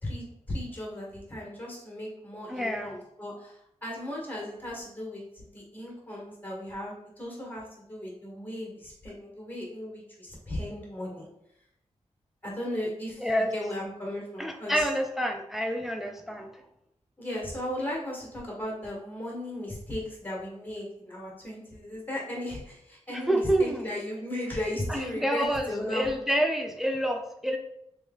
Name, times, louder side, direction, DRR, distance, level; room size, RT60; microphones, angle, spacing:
voice 1, 0.0-11.3 12.4-14.9 17.2-26.1, left 1 dB, 15° left, -4 dB, 1.5 m, -36 dB
voice 2, 2.5-3.0 13.2-13.5 14.4-16.5 23.1-23.8 24.9-27.6, equal, ahead, 4 dB, 0.4 m, -28 dB
3.1 x 3.1 x 3.7 m, 0.75 s
wide cardioid pair, 110°, 12 cm